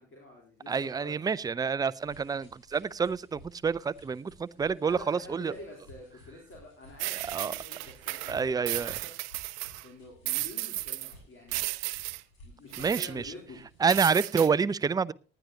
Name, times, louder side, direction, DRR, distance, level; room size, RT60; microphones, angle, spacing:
voice 1, 0.0-1.1 4.8-9.3 9.8-11.6 12.4-13.6, left 2 dB, 40° left, -2 dB, 3.8 m, -48 dB
voice 2, 0.7-5.5 7.3-7.5 8.3-8.9 12.8-13.3 13.8-15.1, right 5 dB, 10° right, 16 dB, 0.5 m, -28 dB
sound 1, 2.0-14.2, left 1 dB, 60° left, 7.0 m, -55 dB
sound 2, 7.0-9.9 10.3-11.1 11.5-12.2 12.7-13.1 13.9-14.5, right 21 dB, 65° right, 0.6 m, -34 dB
19.0 x 11.0 x 2.8 m, 0.34 s
figure-of-eight pair, 55°, 32 cm